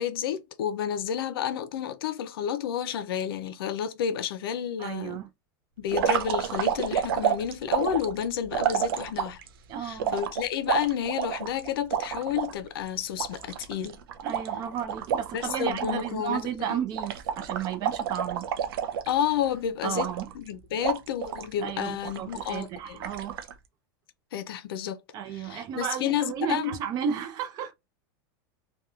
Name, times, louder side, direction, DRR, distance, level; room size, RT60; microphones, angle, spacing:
voice 1, 0.0-5.2 5.8-9.4 9.8-14.0 15.3-16.8 19.0-23.0 24.3-25.0 25.3-26.8, left 9 dB, 90° left, 0.5 m, -30 dB
voice 2, 4.8-5.3 9.7-10.1 14.2-18.5 19.8-20.3 21.6-23.4 25.1-27.7, right 8 dB, 35° right, 0.5 m, -33 dB
sound 1, 5.9-9.5 10.0-12.5 12.9-13.0 13.2-16.1 16.4-16.6 16.9-19.4 19.9-20.5 20.8-21.5 22.0-22.6 23.0-23.5, right 8 dB, 85° right, 0.5 m, -29 dB
2.9 x 2.2 x 2.3 m
supercardioid pair, 150°, 12 cm